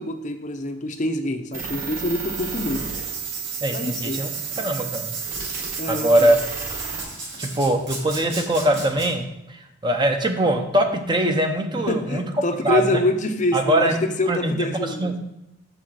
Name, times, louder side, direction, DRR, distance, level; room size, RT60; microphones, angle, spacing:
voice 1, 0.0-2.8 3.7-4.2 5.8-6.3 11.9-15.1, left 1 dB, 40° left, 7 dB, 0.6 m, -26 dB
sound 1, 1.5-7.0, right 7 dB, 45° right, 3.0 m, -32 dB
Writing, 2.3-9.1, right 2 dB, 60° right, 2.4 m, -36 dB
voice 2, 3.6-4.3 4.6-5.2 5.9-6.4 7.4-12.2 12.6-13.0 13.5-14.0 14.3-15.2, right 1 dB, 25° right, 5 dB, 0.7 m, -22 dB
6.6 x 6.3 x 4.7 m, 0.88 s
head